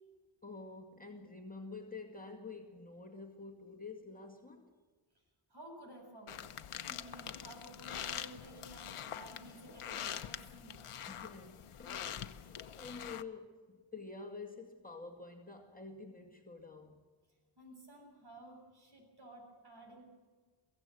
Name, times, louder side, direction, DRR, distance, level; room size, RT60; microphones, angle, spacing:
voice 1, 0.4-4.7 11.1-17.0, left 4 dB, 15° left, 2.2 m, -49 dB
voice 2, 5.5-10.8 17.6-20.0, right 1 dB, 50° right, 7.6 m, -54 dB
sound 1, 6.3-13.2, left 9 dB, 85° left, 1.0 m, -44 dB
23.0 x 16.0 x 7.8 m
wide cardioid pair, 95°, 49 cm